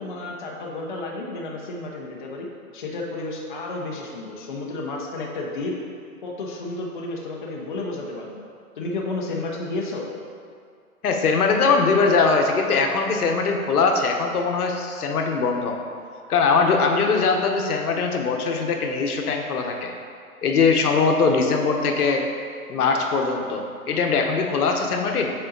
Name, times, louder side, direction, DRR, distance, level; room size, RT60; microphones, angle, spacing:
voice 1, 0.0-2.5 2.7-5.7 6.2-8.5 8.8-10.1, left 2 dB, 35° left, -2 dB, 0.5 m, -31 dB
voice 2, 11.0-15.8 16.3-19.9 20.4-22.2 22.7-25.3, left 4 dB, 80° left, 3 dB, 0.9 m, -21 dB
6.8 x 3.8 x 3.9 m, 2.3 s
hypercardioid pair, 165°, 44 cm